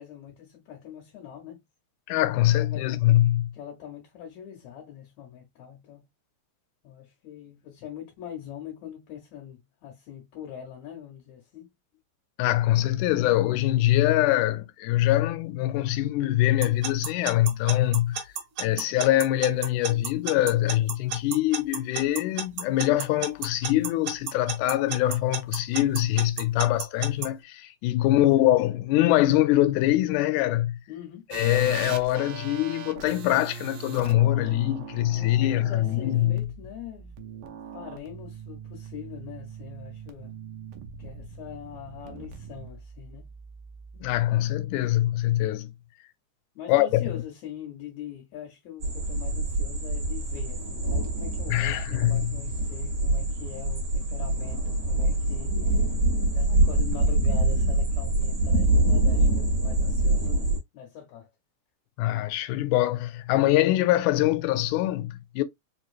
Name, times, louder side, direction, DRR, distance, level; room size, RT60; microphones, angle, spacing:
voice 1, 0.0-1.6 2.5-3.0 3.5-6.1 6.8-11.7 28.0-28.5 30.9-31.3 35.1-37.1 37.7-40.3 41.0-43.3 46.6-55.8 56.3-61.3, left 9 dB, 75° left, 2.2 m, -43 dB
voice 2, 2.1-3.5 12.4-18.3 18.6-30.8 31.3-36.5 44.0-45.7 46.7-47.0 51.5-52.3 62.0-65.4, left 14 dB, 90° left, 2.0 m, -23 dB
Alarm / Clock, 16.6-27.3, right 6 dB, 60° right, 1.5 m, -31 dB
sound 1, 31.3-44.2, right 7 dB, 80° right, 1.4 m, -41 dB
sound 2, 48.8-60.6, right 2 dB, 40° right, 1.9 m, -25 dB
4.7 x 2.9 x 2.4 m
omnidirectional pair, 3.4 m